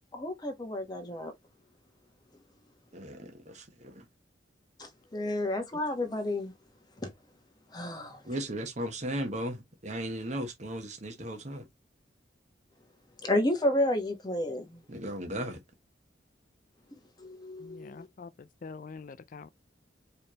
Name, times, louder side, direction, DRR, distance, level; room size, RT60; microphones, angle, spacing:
voice 1, 0.2-1.3 4.8-6.5 7.0-7.1 7.7-8.2 13.2-14.8 17.2-18.1, left 1 dB, 25° left, 1.2 m, -31 dB
voice 2, 2.9-4.0 8.2-11.6 14.9-15.6, right 1 dB, 40° right, 1.1 m, -36 dB
voice 3, 17.6-19.5, left 4 dB, 50° left, 0.4 m, -45 dB
4.6 x 3.3 x 2.9 m
head